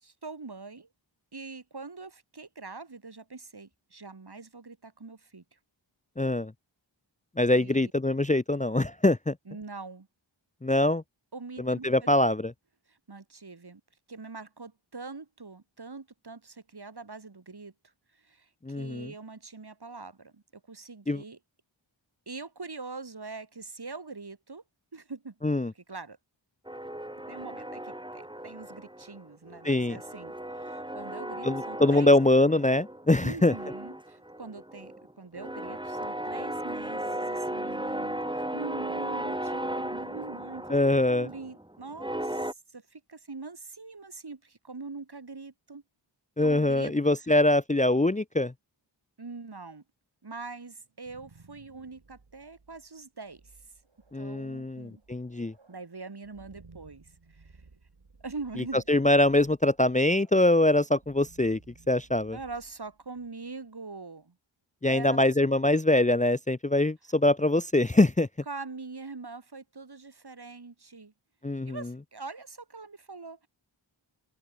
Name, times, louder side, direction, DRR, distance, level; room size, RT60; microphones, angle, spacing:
voice 1, 0.0-0.9 1.3-5.6 7.5-7.9 9.5-10.1 11.3-12.3 12.9-13.8 14.1-17.7 18.1-21.4 22.3-24.6 24.9-25.4 25.7-26.2 27.3-32.1 33.2-40.8 41.1-45.8 46.4-47.1 49.2-49.8 50.2-53.5 54.1-55.0 55.7-57.6 58.2-58.8 62.3-64.3 64.9-65.2 68.5-71.1 71.7-73.5, right 4 dB, 55° right, 2.7 m, -43 dB
voice 2, 6.2-6.5 7.4-9.3 10.6-11.0 11.6-12.5 18.6-19.1 21.1-21.2 25.4-25.7 29.6-30.0 31.4-33.5 40.7-41.3 46.4-48.5 54.1-55.5 58.9-61.6 61.9-62.4 64.8-68.3 71.4-71.8, left 2 dB, 15° left, 0.7 m, -23 dB
sound 1, 26.7-29.2 29.5-33.1 33.4-42.5, right 1 dB, 10° right, 2.2 m, -36 dB
sound 2, 50.8-63.6, right 3 dB, 70° right, 6.0 m, -58 dB
open air
wide cardioid pair, 55°, 47 cm